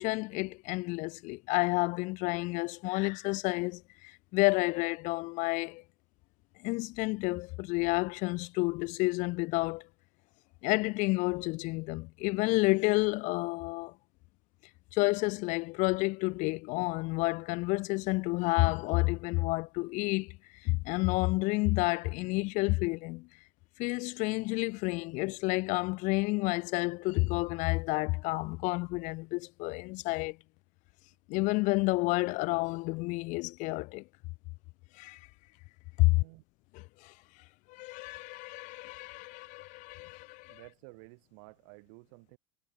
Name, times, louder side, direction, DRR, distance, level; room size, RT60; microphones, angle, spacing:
voice 1, 0.0-5.8 6.6-9.9 10.6-13.9 14.9-23.3 23.8-30.4 31.3-34.0 34.9-35.3 36.0-36.2 37.0-37.1 37.7-40.6, left 24 dB, 55° left, 0.4 m, -30 dB
voice 2, 36.0-36.4 40.5-42.4, right 35 dB, 65° right, 2.2 m, -53 dB
hypercardioid pair, 90°, 16 cm